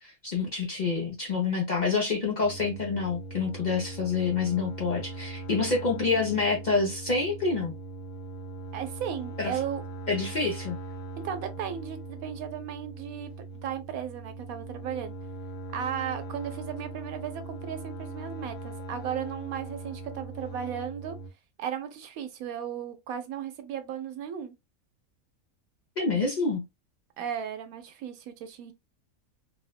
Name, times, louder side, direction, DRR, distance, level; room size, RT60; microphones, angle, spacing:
voice 1, 0.0-7.7 9.4-9.5 10.1-10.8 26.0-26.6, left 4 dB, 50° left, 0.6 m, -27 dB
sound 1, 2.4-21.3, right 3 dB, 70° left, 1.0 m, -40 dB
voice 2, 8.7-9.8 11.2-13.3 13.6-15.1 15.7-21.2 21.6-24.5 27.2-28.7, right 9 dB, 85° right, 1.0 m, -35 dB
3.0 x 2.1 x 2.3 m
omnidirectional pair, 1.5 m